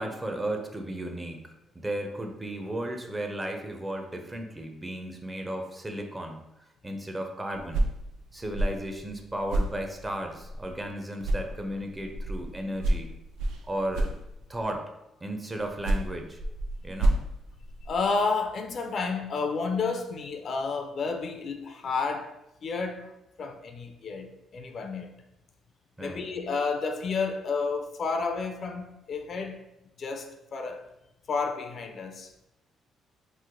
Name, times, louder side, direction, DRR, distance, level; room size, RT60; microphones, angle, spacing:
voice 1, 0.0-6.4 6.8-7.9 8.3-13.1 13.7-14.1 14.5-14.9 15.2-16.4 16.8-17.2 26.0-26.2, right 1 dB, 20° right, 0.5 m, -34 dB
sound 1, 7.5-10.9 11.2-14.7 15.6-18.2, right 1 dB, 85° right, 0.4 m, -31 dB
voice 2, 17.8-22.3 22.6-23.1 23.4-25.1 26.0-29.6 30.0-30.9 31.3-32.3, left 4 dB, 55° left, 0.4 m, -31 dB
3.1 x 2.1 x 3.5 m
cardioid pair, 80°, 0 cm